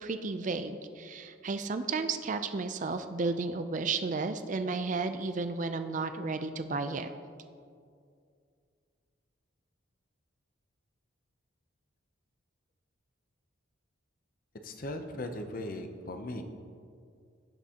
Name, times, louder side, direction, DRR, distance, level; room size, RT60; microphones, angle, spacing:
voice 1, 0.0-7.1, right 4 dB, 35° right, 9 dB, 0.4 m, -33 dB
voice 2, 14.6-16.4, left 1 dB, 40° left, 6 dB, 0.6 m, -38 dB
17.5 x 5.9 x 2.9 m, 2.3 s
head